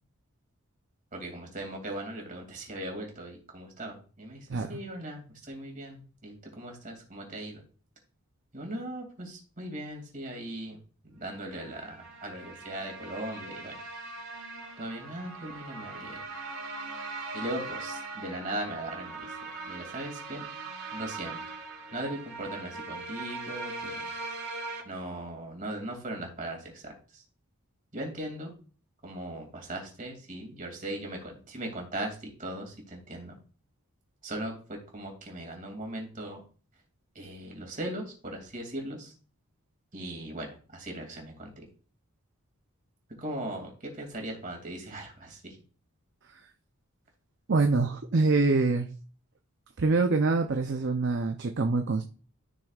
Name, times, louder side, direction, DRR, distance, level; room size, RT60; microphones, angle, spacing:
voice 1, 1.1-7.6 8.5-10.8 11.2-13.8 14.8-16.2 17.3-19.4 19.6-20.4 20.9-21.4 21.9-24.1 24.8-27.2 27.9-28.5 29.0-33.3 34.2-36.4 37.1-39.1 39.9-41.6 43.2-45.6, right 1 dB, 35° right, 2 dB, 2.5 m, -39 dB
sound 1, 11.4-24.8, right 3 dB, 80° right, 2.9 m, -40 dB
voice 2, 47.5-48.9 49.8-52.0, right 3 dB, 55° right, 5 dB, 0.6 m, -25 dB
13.5 x 6.3 x 2.4 m, 0.38 s
head